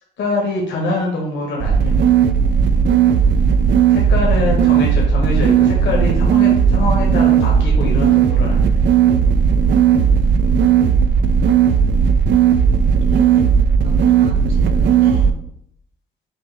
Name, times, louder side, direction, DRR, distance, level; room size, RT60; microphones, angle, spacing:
voice 1, 0.2-1.9 3.9-8.6, left 2 dB, 65° left, -2 dB, 1.3 m, -24 dB
sound 1, 1.6-15.3, right 7 dB, 65° right, 0.4 m, -15 dB
voice 2, 13.1-13.5 13.8-15.5, right 2 dB, 45° right, 1 dB, 1.4 m, -39 dB
6.1 x 2.2 x 3.4 m, 0.69 s
cardioid pair, 90°, 20 cm